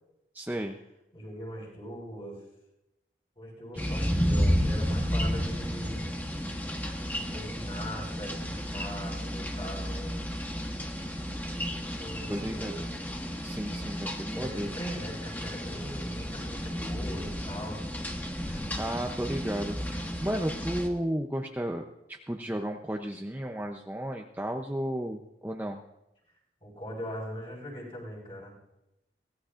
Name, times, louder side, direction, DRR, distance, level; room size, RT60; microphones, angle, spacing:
voice 1, 0.3-0.8 12.3-12.7 13.4-14.7 18.5-21.8 22.1-25.8, right 1 dB, 10° right, 3 dB, 0.6 m, -33 dB
voice 2, 1.1-2.4 3.4-6.0 7.2-10.3 12.0-12.9 14.3-17.8 26.6-28.5, equal, 30° left, -2 dB, 5.2 m, -41 dB
sound 1, 3.8-20.9, equal, 10° left, 1.1 m, -32 dB
22.5 x 17.0 x 2.5 m, 0.90 s
head